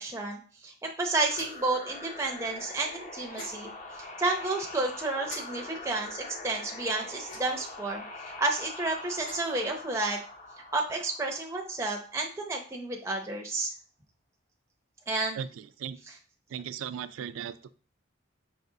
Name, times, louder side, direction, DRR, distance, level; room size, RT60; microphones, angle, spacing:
voice 1, 0.0-3.7 4.2-8.0 8.4-10.2 10.7-13.7 15.1-15.4, right 2 dB, 15° right, 1 dB, 0.5 m, -31 dB
sound 1, 1.0-12.3, left 2 dB, 40° left, 0.6 m, -44 dB
sound 2, 1.3-1.7 3.3-3.6 5.3-5.4 7.2-7.7 9.0-9.6, left 1 dB, 70° left, 2.1 m, -44 dB
voice 2, 15.3-16.0 16.5-17.7, right 8 dB, 80° right, 14 dB, 0.3 m, -37 dB
4.8 x 3.2 x 2.7 m, 0.40 s
head